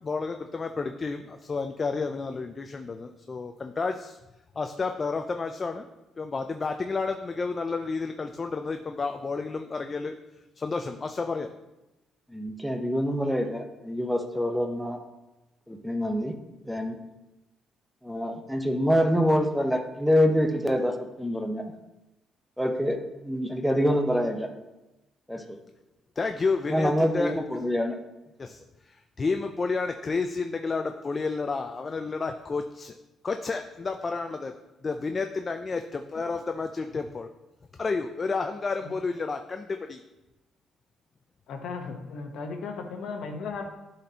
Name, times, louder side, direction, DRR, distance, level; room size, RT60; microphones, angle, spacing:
voice 1, 0.0-4.2 4.6-5.9 6.2-10.2 10.6-11.5 26.2-27.3 28.4-32.9 33.2-34.5 34.8-37.3 37.8-40.0, left 4 dB, 30° left, 6 dB, 0.4 m, -31 dB
voice 2, 12.3-15.0 15.7-16.3 16.7-17.0 18.0-21.6 22.6-23.0 23.2-24.5 25.3-25.4 26.7-28.0, equal, ahead, 3 dB, 0.8 m, -26 dB
voice 3, 41.5-43.7, left 4 dB, 75° left, 4 dB, 0.9 m, -36 dB
11.5 x 4.1 x 2.8 m, 1.0 s
cardioid pair, 100°, 0 cm